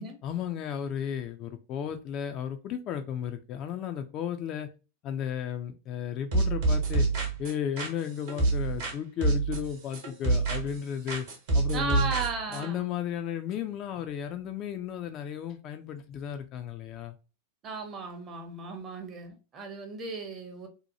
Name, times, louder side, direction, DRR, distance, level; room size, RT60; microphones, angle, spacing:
voice 1, 0.2-4.7 5.0-7.1 7.4-11.3 11.5-12.1 12.5-17.2, left 9 dB, 35° left, 0.3 m, -34 dB
sound 1, 6.3-8.9 9.2-10.8 11.1-12.7, right 3 dB, 55° right, 0.9 m, -27 dB
voice 2, 11.7-12.8 17.6-20.7, right 4 dB, 30° right, 0.7 m, -35 dB
2.8 x 2.2 x 2.6 m
figure-of-eight pair, 90°, 0 cm